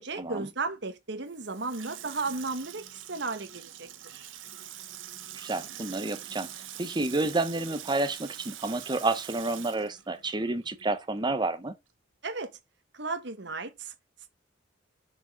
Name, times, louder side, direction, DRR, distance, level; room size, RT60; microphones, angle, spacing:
voice 1, 0.0-4.2 12.2-12.5 12.9-13.9, right 3 dB, 60° right, 1.4 m, -35 dB
Water tap faucet / Sink (filling or washing), 1.3-11.0 11.3-11.4, right 11 dB, 80° right, 1.0 m, -44 dB
voice 2, 5.3-6.5 6.8-11.7, right 2 dB, 25° right, 0.9 m, -30 dB
6.2 x 5.1 x 5.7 m
head